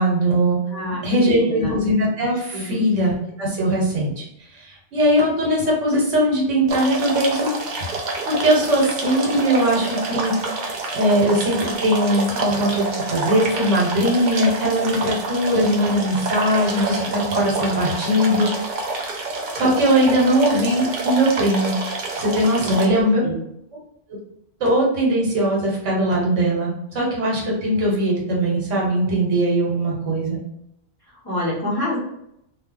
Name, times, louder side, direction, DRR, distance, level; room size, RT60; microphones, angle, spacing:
voice 1, 0.0-0.6 1.0-4.2 4.5-7.5 8.3-18.5 19.5-21.8 22.2-23.2 24.6-30.4, right 1 dB, 85° right, -3 dB, 1.4 m, -20 dB
voice 2, 0.7-1.8 2.5-2.8 22.6-23.4 31.2-32.0, left 1 dB, 20° left, -7 dB, 0.8 m, -27 dB
sound 1, 6.7-22.9, right 3 dB, 55° right, 0.5 m, -27 dB
2.4 x 2.3 x 3.7 m, 0.79 s
omnidirectional pair, 1.2 m